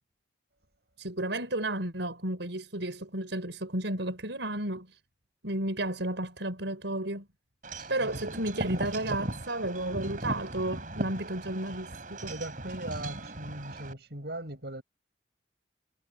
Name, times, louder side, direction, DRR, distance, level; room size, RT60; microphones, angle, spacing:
voice 1, 1.0-5.0 5.4-7.3 7.9-12.3, right 1 dB, 80° right, 5.1 m, -32 dB
Wind chime / Wind, 7.6-13.9, right 1 dB, 45° right, 4.5 m, -38 dB
voice 2, 12.2-14.8, right 1 dB, 60° right, 7.4 m, -39 dB
head